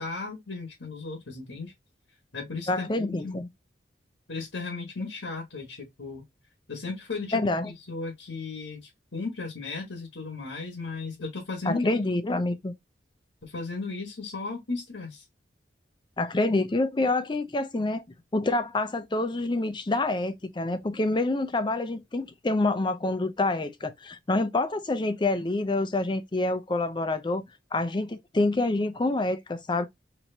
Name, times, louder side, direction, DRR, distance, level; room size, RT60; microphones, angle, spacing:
voice 1, 0.0-1.7 2.3-3.4 4.3-6.2 6.7-12.0 13.4-15.2, left 3 dB, 90° left, 1.3 m, -35 dB
voice 2, 2.7-3.5 7.3-7.7 11.7-12.7 16.2-18.0 18.3-27.4 27.7-29.9, left 2 dB, 25° left, 0.5 m, -27 dB
4.4 x 3.0 x 2.7 m
head